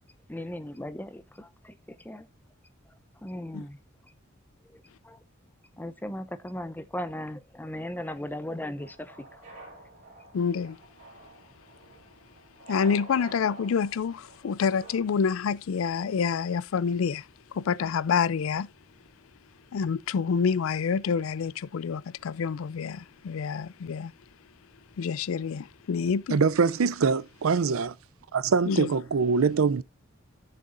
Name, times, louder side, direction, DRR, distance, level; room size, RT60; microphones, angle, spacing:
voice 1, 0.3-2.3 3.2-3.8 4.7-5.2 5.8-9.5 9.7-9.8, left 1 dB, 10° left, 0.7 m, -37 dB
sound 1, 8.8-15.0, right 2 dB, 40° right, 4.9 m, -48 dB
voice 2, 10.3-10.8 12.7-17.3 17.5-18.7 19.7-24.1 25.0-26.4 28.7-28.9, left 6 dB, 80° left, 0.4 m, -27 dB
voice 3, 26.3-28.0 28.3-29.8, right 5 dB, 90° right, 0.5 m, -23 dB
14.5 x 6.6 x 2.5 m
head